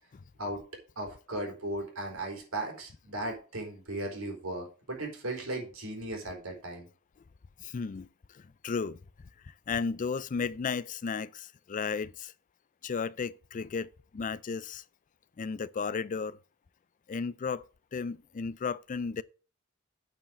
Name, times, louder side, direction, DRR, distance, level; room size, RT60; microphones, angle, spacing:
voice 1, 1.0-6.9, right 1 dB, 85° right, 4.0 m, -36 dB
voice 2, 7.6-12.3 12.8-14.8 15.4-16.4 17.1-17.6 17.9-19.2, left 5 dB, 40° left, 0.4 m, -34 dB
8.9 x 4.7 x 7.3 m
head